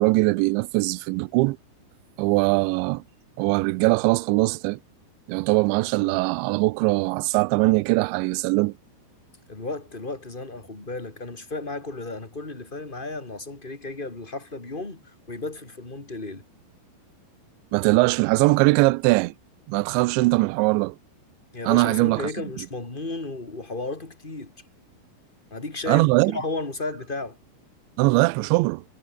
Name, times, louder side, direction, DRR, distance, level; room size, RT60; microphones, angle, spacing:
voice 1, 0.0-1.6 2.2-3.0 3.4-4.8 5.3-8.7 17.7-19.3 19.7-21.0 21.6-22.3 25.9-26.4 28.0-28.8, right 24 dB, 90° right, 2.6 m, -21 dB
voice 2, 9.5-15.0 15.3-16.4 21.5-24.5 25.5-27.4, left 2 dB, 10° left, 2.7 m, -34 dB
omnidirectional pair, 5.9 m